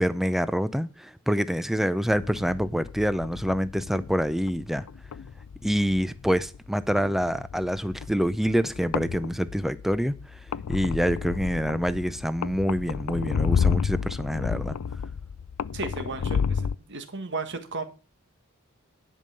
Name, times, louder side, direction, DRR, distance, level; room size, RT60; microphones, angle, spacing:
voice 1, 0.0-4.8 5.6-10.4 10.7-14.8, equal, ahead, 0.5 m, -26 dB
sound 1, 2.1-16.7, left 6 dB, 80° left, 0.4 m, -32 dB
voice 2, 15.7-17.8, right 3 dB, 55° right, 1.5 m, -34 dB
10.5 x 5.4 x 6.7 m
head